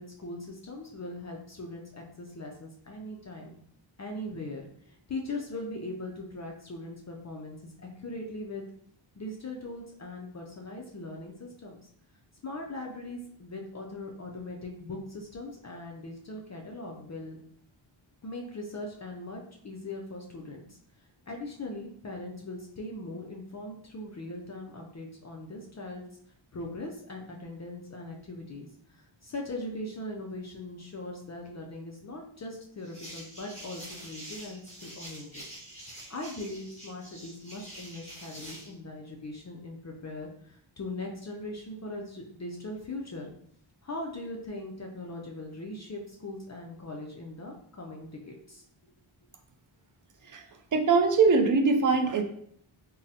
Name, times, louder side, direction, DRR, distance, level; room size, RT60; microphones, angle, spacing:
voice 1, 0.0-3.6 4.0-8.6 9.2-11.8 12.4-17.4 18.2-20.8 21.3-26.0 26.5-35.4 35.9-43.3 43.8-48.6, left 2 dB, 35° left, 0 dB, 0.4 m, -40 dB
sound 1, 32.8-38.7, right 1 dB, 15° left, 1.4 m, -46 dB
voice 2, 50.7-52.2, right 4 dB, 40° right, 5 dB, 0.4 m, -22 dB
3.7 x 2.0 x 2.7 m, 0.65 s
wide cardioid pair, 85°, 49 cm